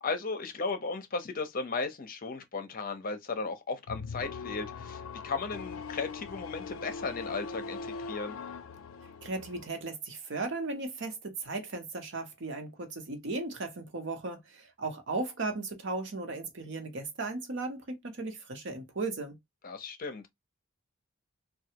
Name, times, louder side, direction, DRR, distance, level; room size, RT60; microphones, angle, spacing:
voice 1, 0.0-8.4 19.6-20.3, left 4 dB, 45° left, 0.6 m, -36 dB
sound 1, 3.9-9.7, left 5 dB, 85° left, 0.4 m, -41 dB
voice 2, 9.2-19.4, right 3 dB, 60° right, 0.9 m, -36 dB
3.2 x 2.3 x 2.8 m
head